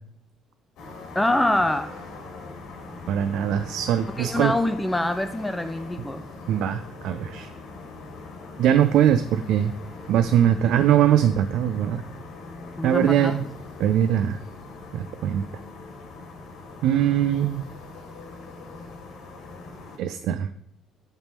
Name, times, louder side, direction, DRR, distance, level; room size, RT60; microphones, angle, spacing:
sound 1, 0.8-20.0, left 3 dB, 70° left, 1.5 m, -41 dB
voice 1, 1.2-1.9 4.2-6.2 12.8-13.3, left 1 dB, 10° left, 9 dB, 0.3 m, -24 dB
voice 2, 3.1-4.5 6.5-7.5 8.6-9.7 10.1-12.0 12.8-13.5 13.8-14.4 14.9-15.4 16.8-17.6 20.0-20.5, right 10 dB, 70° right, 10 dB, 0.3 m, -21 dB
7.1 x 3.6 x 5.3 m, 0.69 s
cardioid pair, 110°, 0 cm